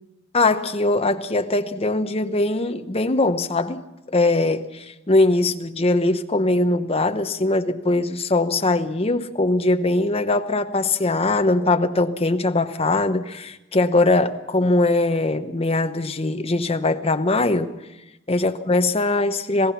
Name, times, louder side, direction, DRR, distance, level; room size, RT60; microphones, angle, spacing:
voice 1, 0.3-3.8 4.1-17.7 18.3-19.7, left 2 dB, 30° left, 8 dB, 1.0 m, -21 dB
27.0 x 17.5 x 5.8 m, 0.98 s
head